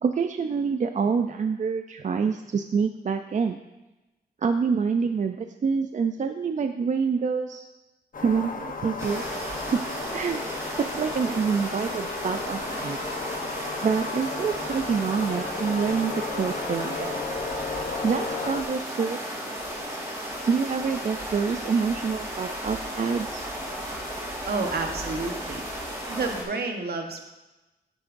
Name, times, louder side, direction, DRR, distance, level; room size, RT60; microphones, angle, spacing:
voice 1, 0.0-3.6 4.4-7.6 8.2-9.6 10.1-10.4 10.8-13.0 13.8-17.2 18.0-19.2 20.5-23.5, right 5 dB, 45° right, 7 dB, 0.4 m, -26 dB
sound 1, 8.1-18.6, left 4 dB, 50° left, 1.0 m, -34 dB
sound 2, 9.0-26.4, equal, 15° right, 3.2 m, -34 dB
voice 2, 24.5-25.6 26.1-27.2, right 3 dB, 65° right, 4 dB, 1.1 m, -30 dB
9.8 x 9.7 x 2.6 m, 1.1 s
wide cardioid pair, 105°, 18 cm